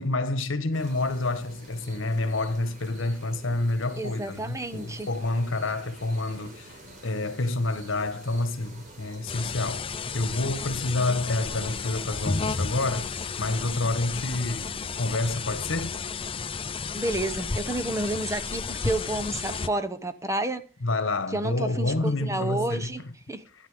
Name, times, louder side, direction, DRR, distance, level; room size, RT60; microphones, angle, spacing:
voice 1, 0.0-13.1 13.4-15.9 20.8-22.9, left 2 dB, 75° left, 1.4 m, -28 dB
sound 1, 0.7-15.2, right 1 dB, 40° right, 4.7 m, -48 dB
voice 2, 4.0-5.1 16.9-20.6 21.3-23.0 23.3-23.4, right 2 dB, 15° right, 1.0 m, -30 dB
sound 2, 9.3-19.7, left 4 dB, 25° left, 0.5 m, -32 dB
13.5 x 10.0 x 5.1 m
head